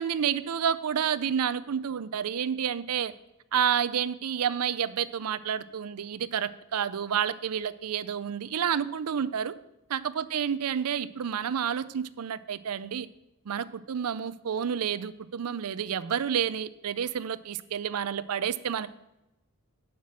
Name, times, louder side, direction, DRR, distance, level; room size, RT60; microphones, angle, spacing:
voice 1, 0.0-3.1 3.5-9.5 9.9-13.1 13.5-18.9, right 8 dB, 85° right, 16 dB, 0.5 m, -29 dB
7.3 x 5.9 x 7.4 m, 0.95 s
head